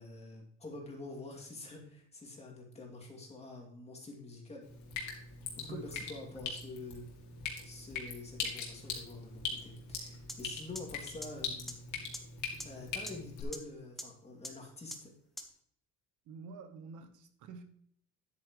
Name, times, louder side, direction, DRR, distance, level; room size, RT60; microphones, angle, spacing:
voice 1, 0.0-4.6 5.6-7.0 7.6-11.7 12.6-15.1, left 3 dB, 20° left, 2.5 m, -47 dB
Drip, 4.6-13.4, left 5 dB, 60° left, 2.7 m, -42 dB
sound 1, 10.3-10.4 10.8-10.9 11.2-11.3 11.7-11.8 12.1-12.2 12.6-12.7 13.1-13.2 13.5-13.6 14.0-14.1 14.4-14.5 14.9-15.0 15.4-15.5, equal, ahead, 1.1 m, -40 dB
voice 2, 16.3-17.6, right 5 dB, 65° right, 1.2 m, -48 dB
10.0 x 8.7 x 3.1 m
cardioid pair, 140°, 32 cm